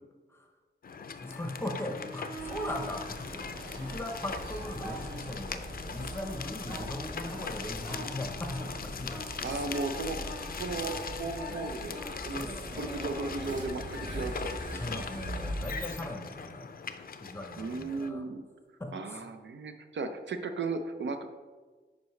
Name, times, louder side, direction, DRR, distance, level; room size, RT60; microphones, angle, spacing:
sound 1, 0.8-18.1, left 5 dB, 50° left, 0.4 m, -41 dB
voice 1, 1.2-3.5 3.8-9.7 12.3-12.6 14.7-16.8 17.2-18.2 18.8-19.2, left 1 dB, 15° left, 3 dB, 0.8 m, -39 dB
sound 2, 1.7-2.9 3.5-5.6 5.9-14.1 16.9-17.0, right 2 dB, 25° right, 1.9 m, -45 dB
sound 3, 2.4-15.7, right 1 dB, 45° right, 1.7 m, -42 dB
voice 2, 9.4-10.3 10.6-12.5 12.8-15.0 17.6-18.4 18.9-21.3, right 3 dB, 70° right, 7 dB, 0.6 m, -36 dB
9.4 x 5.2 x 3.2 m, 1.4 s
wide cardioid pair, 165°, 20 cm